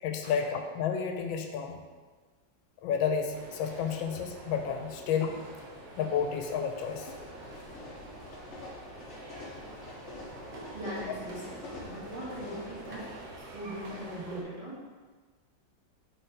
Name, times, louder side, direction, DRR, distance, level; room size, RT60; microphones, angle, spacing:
voice 1, 0.0-1.8 2.8-5.4 6.0-7.1, left 7 dB, 85° left, 5 dB, 1.4 m, -31 dB
sound 1, 3.3-14.4, right 2 dB, 60° right, 1.3 m, -47 dB
sound 2, 6.5-13.2, left 2 dB, 55° left, 0.8 m, -46 dB
voice 2, 10.7-13.1 13.5-14.8, equal, 20° right, -9 dB, 1.3 m, -40 dB
5.5 x 3.6 x 4.7 m, 1.4 s
omnidirectional pair, 2.1 m